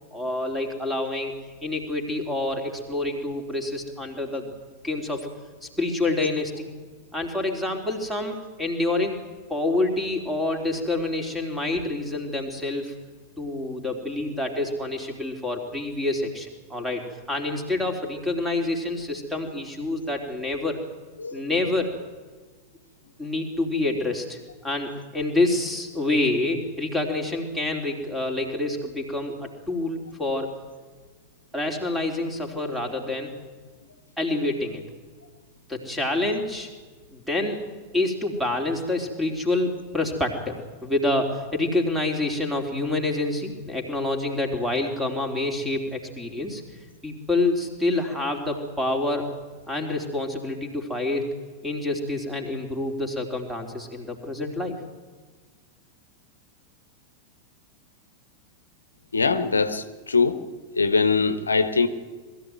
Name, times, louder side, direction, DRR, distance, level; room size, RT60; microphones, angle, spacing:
voice 1, 0.1-1.4 1.6-4.5 4.8-5.3 5.6-6.7 7.1-9.2 9.5-12.9 13.4-20.8 21.3-21.9 23.2-30.5 31.5-33.4 34.2-34.8 35.7-36.7 37.1-37.6 37.9-46.6 47.0-49.2 49.7-51.3 51.6-54.8, left 2 dB, 5° right, 4 dB, 3.9 m, -27 dB
voice 2, 59.1-61.9, left 4 dB, 75° left, 11 dB, 1.1 m, -22 dB
20.5 x 14.0 x 9.5 m, 1.4 s
figure-of-eight pair, 90°, 0 cm